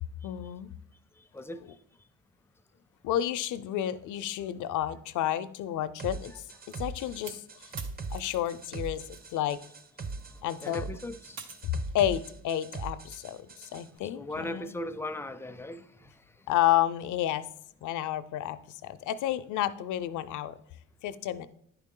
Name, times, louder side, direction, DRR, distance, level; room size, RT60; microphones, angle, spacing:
voice 1, 0.2-0.7 3.0-6.5 6.8-7.4 8.1-9.0 9.3-9.6 10.4-10.8 11.9-14.7 16.5-17.5 17.8-20.6 21.0-21.5, left 12 dB, 80° left, 14 dB, 0.5 m, -30 dB
sound 1, 6.0-13.9, right 4 dB, 30° right, 0.6 m, -41 dB
sound 2, 6.7-9.3 9.6-12.2, right 5 dB, 85° right, 1.0 m, -48 dB
voice 2, 10.6-11.4 14.1-16.1, left 1 dB, 10° left, 11 dB, 0.4 m, -38 dB
10.0 x 4.8 x 3.7 m, 0.69 s
cardioid pair, 90°, 30 cm